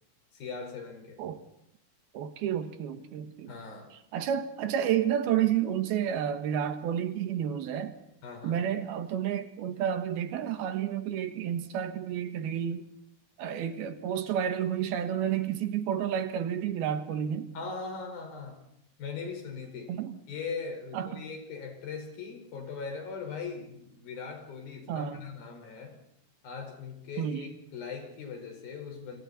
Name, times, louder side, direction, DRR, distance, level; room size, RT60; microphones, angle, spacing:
voice 1, 0.3-1.2 3.5-3.9 8.2-8.6 17.5-18.6 19.0-19.9 20.3-26.0 26.4-29.2, left 5 dB, 70° left, 4 dB, 6.5 m, -40 dB
voice 2, 2.1-3.5 4.1-7.9 8.4-12.9 13.4-17.5 19.9-20.2 20.9-21.2 24.9-25.2 27.2-27.5, right 9 dB, 85° right, 8 dB, 3.3 m, -30 dB
29.0 x 26.5 x 4.2 m, 0.75 s
omnidirectional pair, 4.3 m